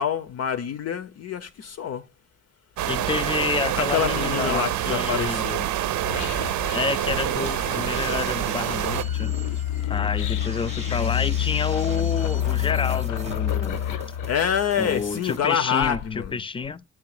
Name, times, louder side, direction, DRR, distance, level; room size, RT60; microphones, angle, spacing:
voice 1, 0.0-2.0 3.8-5.7 14.3-16.4, left 8 dB, 55° left, 0.6 m, -26 dB
sound 1, 2.8-9.0, right 12 dB, 75° right, 0.7 m, -26 dB
voice 2, 2.9-5.4 6.7-9.3 9.9-13.8 14.8-16.8, left 5 dB, 20° left, 0.4 m, -29 dB
sound 2, 6.0-15.3, left 11 dB, 85° left, 0.8 m, -28 dB
sound 3, 7.9-15.4, right 4 dB, 20° right, 0.7 m, -42 dB
8.2 x 3.3 x 4.8 m
cardioid pair, 90°, 30 cm